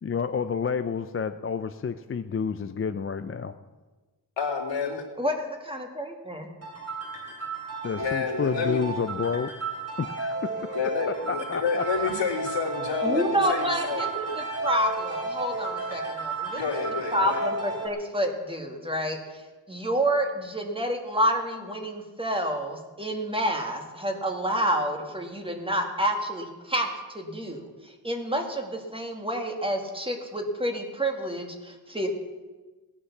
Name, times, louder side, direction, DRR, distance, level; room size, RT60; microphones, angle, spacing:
voice 1, 0.0-3.5 7.8-9.5 10.0-10.9 11.3-12.1, left 6 dB, 30° left, 10 dB, 0.4 m, -30 dB
voice 2, 4.4-5.0 7.9-8.8 10.7-14.0 16.5-17.4, left 5 dB, 85° left, 0 dB, 3.0 m, -29 dB
voice 3, 5.2-6.5 13.0-16.6 17.1-32.1, equal, 10° right, 3 dB, 1.8 m, -29 dB
sound 1, 6.6-17.9, right 3 dB, 35° right, 3.0 m, -33 dB
17.0 x 9.9 x 7.2 m, 1.3 s
wide cardioid pair, 145°, 43 cm